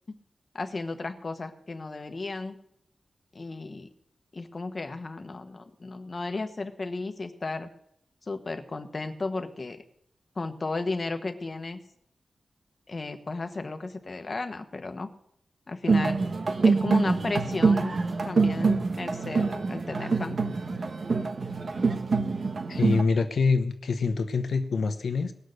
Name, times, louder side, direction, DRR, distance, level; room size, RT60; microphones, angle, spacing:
voice 1, 0.5-2.5 3.3-3.9 4.3-7.7 8.3-9.8 10.3-11.8 12.9-15.1 15.7-16.2 16.6-18.0 18.2-20.4, left 3 dB, 40° left, 7 dB, 1.1 m, -34 dB
sound 1, 15.9-23.0, right 4 dB, 55° right, 1.1 m, -25 dB
voice 2, 22.7-25.3, left 4 dB, 85° left, 8 dB, 0.9 m, -25 dB
18.5 x 6.5 x 6.5 m, 0.72 s
wide cardioid pair, 125°, 0 cm